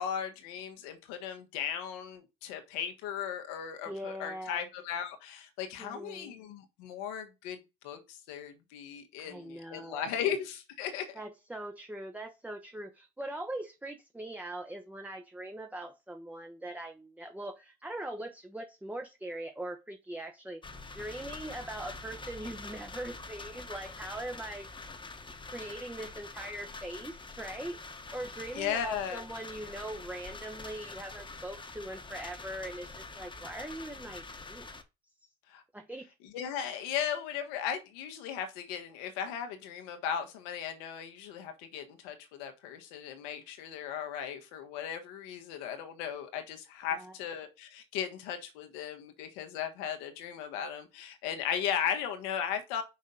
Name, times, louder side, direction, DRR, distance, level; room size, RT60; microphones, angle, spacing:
voice 1, 0.0-7.6 7.8-11.1 28.5-29.2 35.5-35.6 36.2-52.8, left 8 dB, 80° left, 1.5 m, -36 dB
voice 2, 3.9-4.6 5.8-6.3 9.2-10.2 11.2-20.6 20.9-24.7 25.4-27.8 28.1-34.7 35.2-35.3 35.7-36.1 46.9-47.1, right 1 dB, 5° right, 1.0 m, -41 dB
sound 1, 20.6-34.8, left 3 dB, 25° left, 1.3 m, -45 dB
5.6 x 5.3 x 3.9 m
hypercardioid pair, 70°, 20 cm